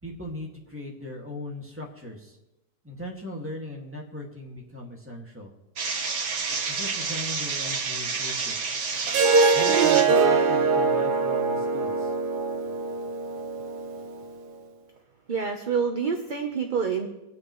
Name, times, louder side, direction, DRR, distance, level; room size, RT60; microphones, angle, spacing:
voice 1, 0.0-2.4 2.8-5.5 6.7-8.5 9.5-12.1, left 1 dB, 10° right, -2 dB, 2.0 m, -39 dB
sound 1, 5.8-10.1, right 5 dB, 60° right, 1.7 m, -29 dB
Harp, 9.1-14.2, right 4 dB, 80° right, 1.6 m, -23 dB
voice 2, 15.3-17.1, right 6 dB, 35° right, 3 dB, 0.8 m, -27 dB
25.0 x 9.6 x 3.2 m, 0.96 s
omnidirectional pair, 1.8 m